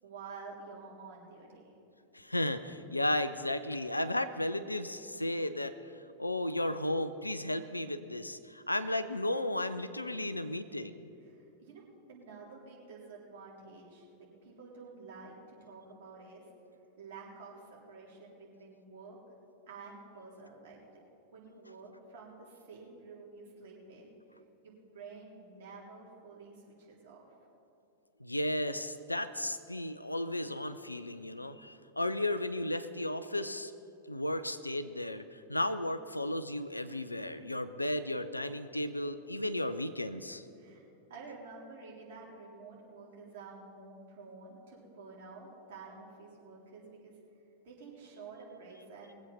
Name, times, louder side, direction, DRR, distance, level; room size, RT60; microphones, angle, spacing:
voice 1, 0.0-1.7 11.2-11.8 12.1-16.4 17.0-19.2 19.7-20.8 21.3-24.1 24.6-27.2 40.6-40.8 41.1-47.2 47.6-49.1, right 4 dB, 55° right, -4 dB, 3.6 m, -50 dB
voice 2, 2.1-5.8 6.2-11.0 28.2-33.7 34.1-40.4, left 1 dB, 85° left, 12 dB, 0.6 m, -34 dB
21.0 x 8.1 x 5.6 m, 2.8 s
figure-of-eight pair, 90°, 0 cm